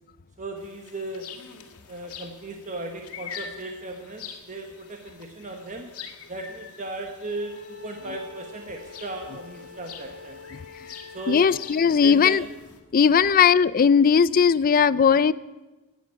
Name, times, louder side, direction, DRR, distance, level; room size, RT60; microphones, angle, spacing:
voice 1, 0.4-1.3 1.9-5.9 6.3-10.4 11.1-11.5 12.0-12.4 13.2-13.3, right 2 dB, 35° right, 3 dB, 1.2 m, -36 dB
sound 1, 0.6-12.8, left 7 dB, 75° left, 1.9 m, -45 dB
Bowed string instrument, 7.2-12.3, left 4 dB, 10° left, 5.3 m, -46 dB
voice 2, 11.3-12.5 12.9-15.3, left 6 dB, 40° left, 18 dB, 0.4 m, -18 dB
13.0 x 10.5 x 8.8 m, 1.2 s
head